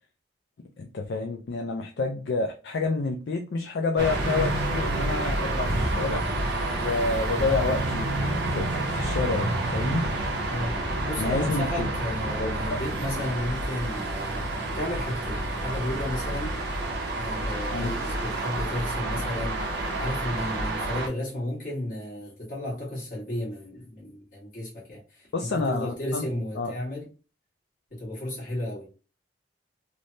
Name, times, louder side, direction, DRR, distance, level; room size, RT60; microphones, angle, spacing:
voice 1, 0.8-6.2 6.8-10.1 11.2-11.9 12.4-12.5 17.7-18.0 25.3-26.3 26.6-26.7, left 3 dB, 65° left, 0.4 m, -29 dB
sound 1, 4.0-21.1, right 1 dB, 60° right, 0.7 m, -29 dB
voice 2, 10.5-10.8 11.1-14.5 14.7-16.6 17.1-27.1 27.9-28.9, left 1 dB, 45° left, 1.4 m, -33 dB
3.2 x 2.1 x 2.6 m
head